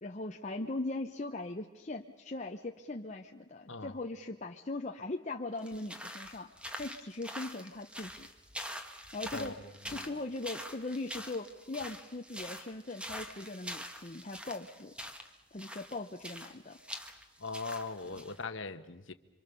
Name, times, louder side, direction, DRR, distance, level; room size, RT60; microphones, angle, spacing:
voice 1, 0.0-8.3 9.1-9.6 9.9-15.0 15.5-16.8, left 2 dB, 35° left, 0.9 m, -40 dB
sound 1, 5.6-18.4, equal, 5° right, 1.4 m, -45 dB
voice 2, 9.9-10.2 17.4-19.1, left 3 dB, 65° left, 1.2 m, -40 dB
27.0 x 25.5 x 6.9 m
head